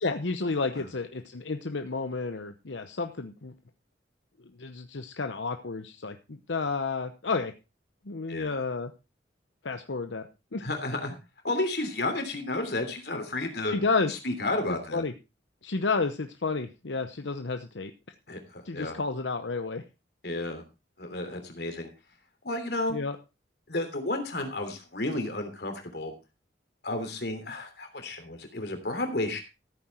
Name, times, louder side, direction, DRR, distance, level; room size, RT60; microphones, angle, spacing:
voice 1, 0.0-3.5 4.6-7.5 8.1-8.9 9.6-10.2 10.5-10.7 13.7-14.1 14.7-15.1 15.6-17.9 18.6-19.8 22.9-23.2, left 4 dB, 85° left, 7 dB, 0.9 m, -31 dB
voice 2, 8.3-8.6 10.6-11.1 11.4-13.8 14.1-15.0 18.3-19.0 20.2-20.6 21.0-21.9 22.4-23.0 23.7-26.1 26.8-29.4, left 2 dB, 60° left, 6 dB, 3.2 m, -32 dB
14.5 x 8.8 x 4.4 m, 0.29 s
head